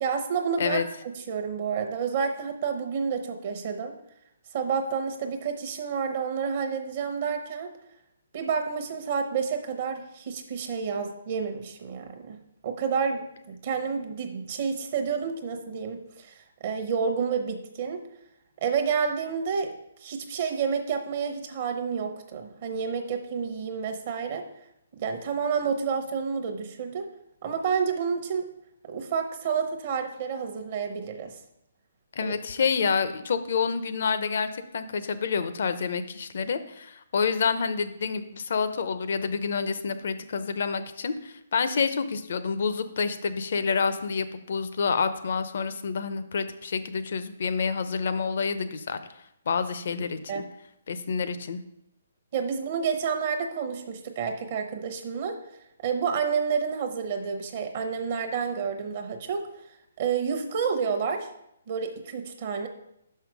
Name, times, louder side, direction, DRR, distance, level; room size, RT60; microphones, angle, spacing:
voice 1, 0.0-0.8 1.1-3.9 4.5-7.7 8.3-12.4 12.6-18.0 18.6-19.7 20.0-24.4 24.9-27.1 27.4-28.5 28.9-31.3 32.2-32.4 50.3-50.4 52.3-55.4 55.8-59.5 60.0-61.3 61.7-62.7, right 6 dB, 45° right, 5 dB, 0.8 m, -29 dB
voice 2, 32.2-49.0 49.5-50.4 50.9-51.6, left 5 dB, 60° left, 11 dB, 0.6 m, -28 dB
5.8 x 5.6 x 4.8 m, 0.79 s
hypercardioid pair, 150°, 0 cm